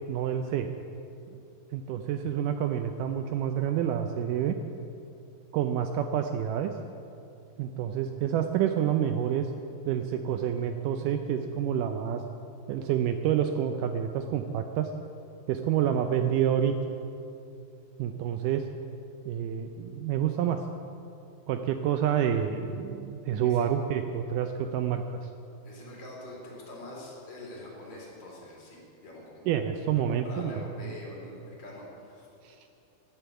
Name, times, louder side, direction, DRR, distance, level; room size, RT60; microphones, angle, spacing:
voice 1, 0.1-0.7 1.7-4.6 5.5-6.7 7.6-9.5 9.9-12.2 12.7-14.9 15.5-16.8 18.0-18.6 19.3-20.6 21.5-25.3 29.5-30.9 32.4-32.6, right 9 dB, 80° right, 7 dB, 2.0 m, -28 dB
voice 2, 23.3-23.6 25.6-29.5 29.9-32.3, left 2 dB, 50° left, -4 dB, 4.0 m, -44 dB
11.5 x 10.5 x 8.1 m, 2.6 s
omnidirectional pair, 4.1 m